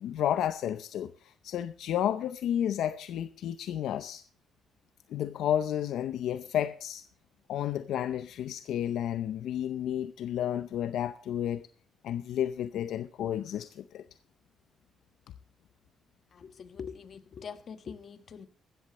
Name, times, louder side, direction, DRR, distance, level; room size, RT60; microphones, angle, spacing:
voice 1, 0.0-4.2 5.1-7.0 7.5-11.7 12.0-14.0, left 10 dB, 80° left, 0.6 m, -31 dB
voice 2, 16.3-18.5, left 6 dB, 50° left, 1.5 m, -43 dB
16.5 x 13.5 x 3.1 m
cardioid pair, 90°, 0 cm